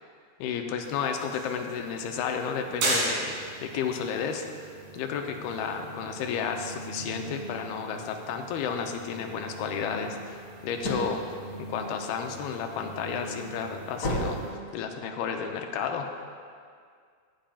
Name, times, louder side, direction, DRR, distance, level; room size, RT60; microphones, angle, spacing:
voice 1, 0.4-3.4 3.6-11.2 11.6-16.3, left 6 dB, 80° left, 4 dB, 2.4 m, -32 dB
sound 1, 0.8-14.5, right 2 dB, 70° right, 3.8 m, -38 dB
sound 2, 10.8-12.5 13.0-15.2, equal, 45° left, 1.2 m, -32 dB
16.5 x 8.8 x 2.4 m, 2.1 s
omnidirectional pair, 4.7 m